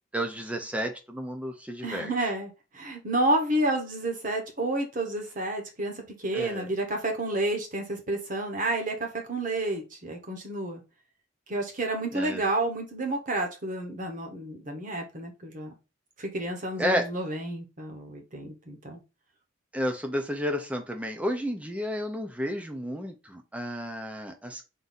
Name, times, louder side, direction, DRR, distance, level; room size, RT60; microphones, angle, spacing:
voice 1, 0.1-2.1 6.3-6.7 12.1-12.4 16.8-17.1 19.7-24.6, equal, 5° right, 0.6 m, -31 dB
voice 2, 1.8-10.8 11.5-15.7 16.2-19.0, right 2 dB, 40° right, 1.1 m, -30 dB
3.7 x 2.7 x 4.0 m
head